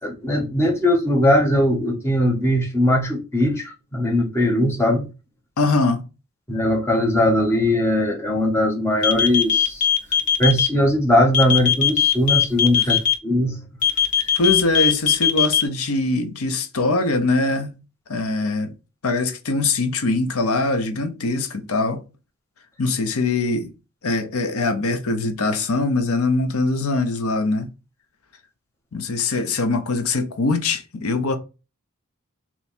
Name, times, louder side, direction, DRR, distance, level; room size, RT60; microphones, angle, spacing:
voice 1, 0.0-5.1 6.5-9.8 10.4-13.6, left 1 dB, 10° left, 1.1 m, -20 dB
voice 2, 5.6-6.0 12.8-12.9 14.3-17.8 18.1-18.7 19.0-22.0 22.8-23.7 24.0-27.7 28.9-31.4, left 3 dB, 85° left, 0.7 m, -22 dB
sound 1, 9.0-10.7 11.3-13.1 13.8-15.6, left 8 dB, 40° left, 0.6 m, -18 dB
3.4 x 3.0 x 4.2 m
head